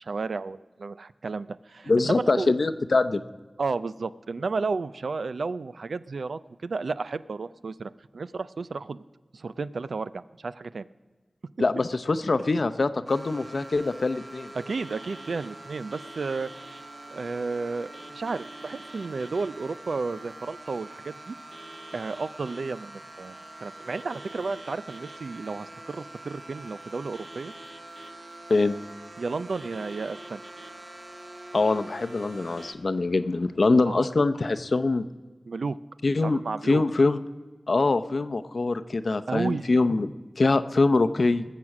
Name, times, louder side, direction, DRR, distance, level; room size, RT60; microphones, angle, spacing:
voice 1, 0.0-2.6 3.6-9.0 9.3-10.9 14.6-16.5 17.1-21.4 21.9-27.5 29.2-30.4 33.9-34.1 35.5-35.8 36.2-36.8 39.3-39.7, right 4 dB, 90° right, 15 dB, 0.4 m, -32 dB
voice 2, 1.9-3.2 11.6-14.5 28.5-28.7 31.5-35.0 36.0-37.2 37.7-41.4, left 3 dB, 65° left, 11 dB, 0.7 m, -24 dB
sound 1, 13.1-32.8, right 1 dB, 50° right, 1.5 m, -44 dB
20.0 x 7.5 x 6.0 m, 1.4 s
wide cardioid pair, 70°, 0 cm